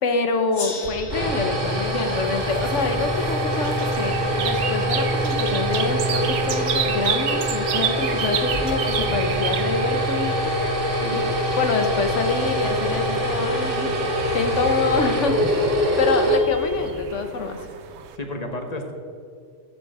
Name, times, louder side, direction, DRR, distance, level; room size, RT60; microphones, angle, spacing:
voice 1, 0.0-10.5 11.1-11.2 11.6-14.1 14.3-15.6 16.0-17.6, left 4 dB, 85° left, 6 dB, 1.4 m, -26 dB
Gong, 0.5-3.7, left 4 dB, 70° left, 1.5 m, -39 dB
sound 1, 0.8-17.0, equal, 90° right, 2.3 m, -24 dB
sound 2, 1.7-18.2, right 8 dB, 70° right, 1.0 m, -33 dB
voice 2, 15.2-15.9 18.1-18.9, left 1 dB, 35° left, 4 dB, 1.2 m, -32 dB
14.0 x 7.0 x 4.8 m, 2.3 s
omnidirectional pair, 1.2 m